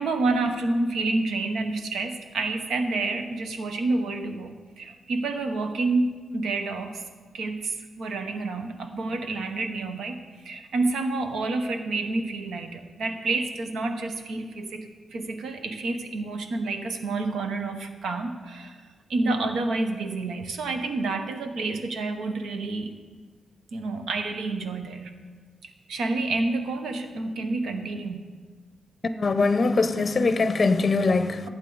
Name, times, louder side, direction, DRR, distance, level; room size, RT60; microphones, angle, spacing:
voice 1, 0.0-7.0 7.3-18.8 19.1-22.9 23.7-25.1 25.6-28.2, right 3 dB, 85° right, 6 dB, 1.0 m, -29 dB
voice 2, 29.0-31.5, left 3 dB, 35° left, 10 dB, 0.7 m, -22 dB
15.0 x 8.2 x 4.0 m, 1.5 s
wide cardioid pair, 115°, 0 cm